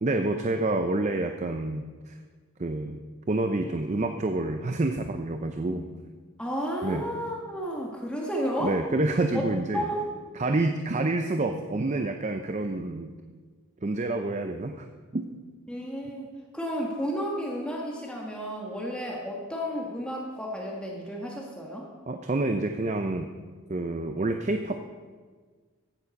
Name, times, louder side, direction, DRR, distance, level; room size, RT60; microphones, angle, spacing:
voice 1, 0.0-2.2 2.6-3.0 3.3-5.8 6.8-7.0 8.6-9.9 10.4-13.1 13.8-14.9 15.1-15.3 22.1-23.3 23.7-24.8, right 2 dB, 35° right, 6 dB, 0.5 m, -28 dB
voice 2, 6.4-8.8 9.3-9.4 9.7-10.1 11.3-11.4 15.7-21.9, equal, 5° left, -2 dB, 1.4 m, -32 dB
15.0 x 7.3 x 5.2 m, 1.5 s
head